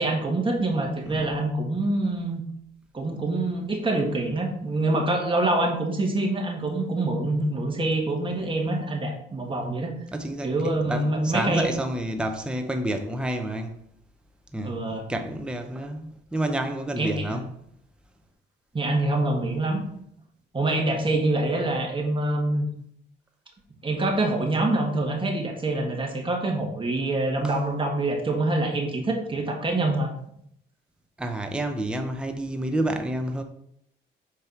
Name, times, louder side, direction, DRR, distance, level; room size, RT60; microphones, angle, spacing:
voice 1, 0.0-2.4 2.9-9.9 10.4-11.7 14.6-15.0 17.0-17.4 18.7-19.8 20.5-22.7 23.8-30.1, right 2 dB, 25° right, 1.6 m, -25 dB
voice 2, 8.3-8.7 10.1-13.8 14.5-17.5 27.4-27.5 31.2-33.4, right 1 dB, 5° right, 0.7 m, -29 dB
5.5 x 4.6 x 4.4 m
cardioid pair, 90°, 20 cm